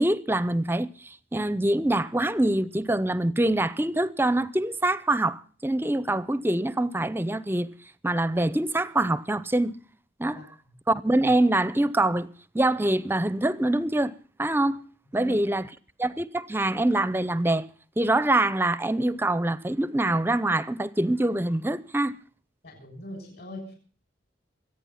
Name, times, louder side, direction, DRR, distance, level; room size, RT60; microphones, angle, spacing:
voice 1, 0.0-7.7 8.0-9.7 10.2-10.4 10.9-12.3 12.5-14.1 14.4-14.8 15.1-15.6 16.0-17.7 18.0-22.1, right 1 dB, 10° right, 0.6 m, -24 dB
voice 2, 15.1-15.6 22.6-23.7, left 1 dB, 55° left, 6.8 m, -41 dB
25.0 x 9.1 x 5.7 m
head